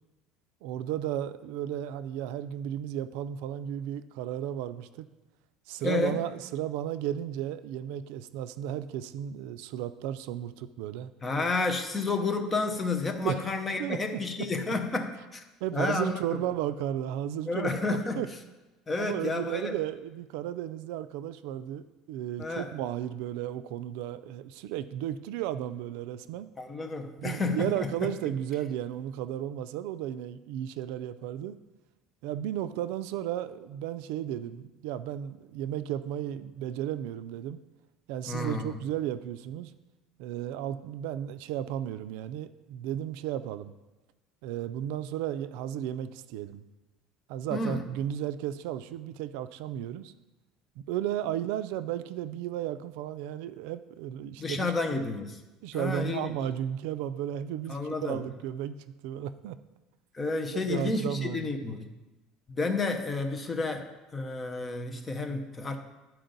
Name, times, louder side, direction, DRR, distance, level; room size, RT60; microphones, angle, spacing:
voice 1, 0.6-5.1 5.7-11.1 13.2-13.4 13.8-14.2 15.6-17.7 18.2-18.3 19.0-26.5 27.2-31.6 32.2-37.6 38.1-39.7 40.2-43.7 44.4-46.6 47.3-50.1 50.8-55.0 55.6-59.6 60.5-61.5, right 11 dB, 75° right, 13 dB, 0.3 m, -34 dB
voice 2, 5.8-6.2 11.2-15.4 15.7-16.4 17.5-18.2 18.9-19.8 22.4-22.7 26.6-28.1 38.3-38.7 47.5-47.8 54.4-55.4 55.7-56.3 57.7-58.2 60.1-61.9 62.5-65.8, left 3 dB, 15° left, 4 dB, 0.6 m, -31 dB
11.5 x 4.4 x 3.9 m, 1.1 s
cardioid pair, 170°, 0 cm